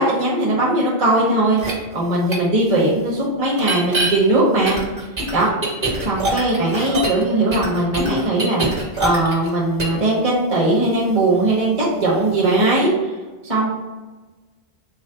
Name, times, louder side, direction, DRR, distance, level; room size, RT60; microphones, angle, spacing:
voice 1, 0.0-4.8 5.3-5.5 6.0-8.7 9.0-12.9 13.4-13.7, right 2 dB, 35° right, -6 dB, 1.0 m, -19 dB
sound 1, 1.6-1.7 2.3-2.4 3.6-4.1 4.7-7.2 7.5-9.5 9.8-10.0, right 2 dB, 50° right, 1.3 m, -24 dB
4.5 x 2.0 x 3.8 m, 1.2 s
omnidirectional pair, 1.1 m